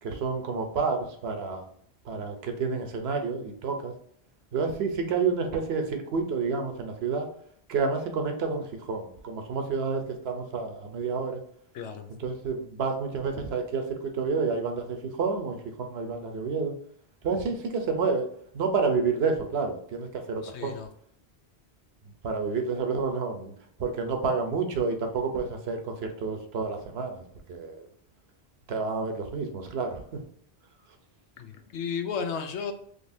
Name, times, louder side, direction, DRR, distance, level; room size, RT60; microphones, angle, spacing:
voice 1, 0.0-1.7 2.0-3.9 4.5-7.3 7.7-11.4 12.1-16.7 17.2-18.3 18.5-20.7 22.2-23.5 23.8-27.2 27.5-27.9 28.7-30.0, right 4 dB, 70° right, 5 dB, 1.0 m, -29 dB
voice 2, 11.7-12.1 20.4-20.9 31.4-32.7, left 6 dB, 85° left, 6 dB, 0.9 m, -33 dB
4.0 x 3.2 x 2.7 m, 0.63 s
omnidirectional pair, 1.1 m